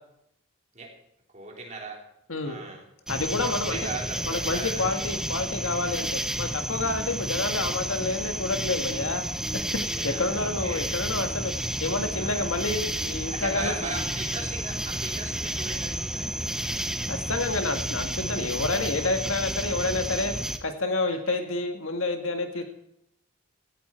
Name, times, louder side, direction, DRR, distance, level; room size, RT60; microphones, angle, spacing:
voice 1, 1.3-2.0 2.4-2.8 3.4-5.1 6.9-7.3 9.8-10.9 12.1-12.5 13.3-16.6 21.1-21.4 22.5-22.6, right 3 dB, 35° right, -1 dB, 3.6 m, -38 dB
voice 2, 3.1-3.8 4.3-9.3 10.0-13.7 17.1-20.3 20.6-22.6, left 2 dB, 70° left, 6 dB, 1.8 m, -29 dB
sound 1, 3.1-20.6, right 1 dB, 5° right, 0.7 m, -31 dB
16.5 x 14.5 x 4.5 m, 0.79 s
head